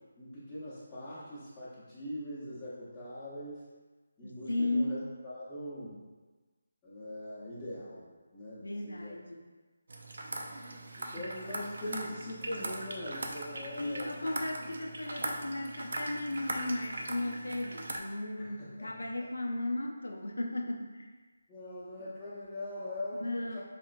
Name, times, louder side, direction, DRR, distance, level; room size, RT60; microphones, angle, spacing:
voice 1, 0.2-3.6 4.2-6.0 6.8-9.1 11.0-14.1 18.4-19.1 21.5-23.6, left 1 dB, 10° left, -13 dB, 0.8 m, -42 dB
voice 2, 4.2-5.0 8.6-9.5 11.2-11.3 13.8-21.1 23.2-23.6, left 2 dB, 80° left, 3 dB, 0.5 m, -35 dB
sound 1, 9.9-18.0, right 2 dB, 65° right, 0.4 m, -40 dB
4.1 x 2.9 x 2.4 m, 1.3 s
figure-of-eight pair, 155°, 0 cm